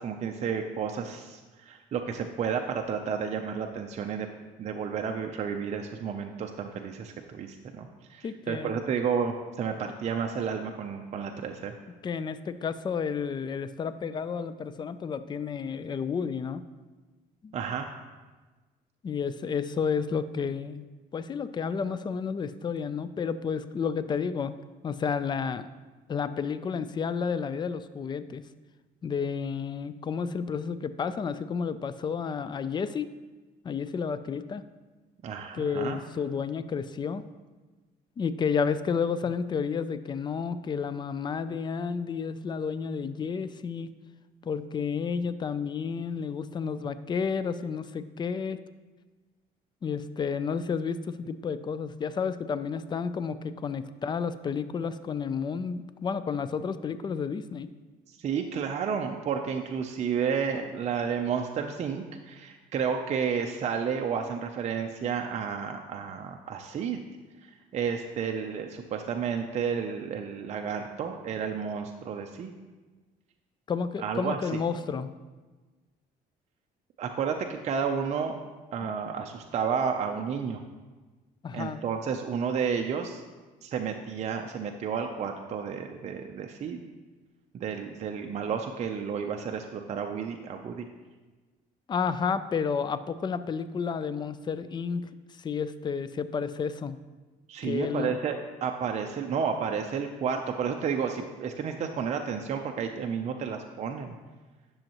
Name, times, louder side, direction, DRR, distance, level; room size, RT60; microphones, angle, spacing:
voice 1, 0.0-4.3 4.6-11.7 17.5-17.9 35.2-36.0 58.1-67.0 67.4-72.5 74.0-74.6 77.0-78.4 78.7-80.6 81.5-83.2 83.6-86.8 87.5-90.9 97.5-104.1, right 6 dB, 40° right, 3 dB, 0.5 m, -31 dB
voice 2, 8.2-8.8 12.0-16.6 17.4-17.5 19.0-20.9 21.1-24.5 24.8-25.7 26.1-28.4 29.0-33.1 33.6-34.6 35.5-37.2 38.2-43.9 44.4-48.6 49.8-57.7 73.7-75.1 78.8-78.9 81.4-81.8 91.9-95.1 95.4-97.0 97.6-98.1, left 6 dB, 25° left, 13 dB, 0.4 m, -31 dB
10.5 x 6.3 x 2.9 m, 1.3 s
cardioid pair, 110°, 17 cm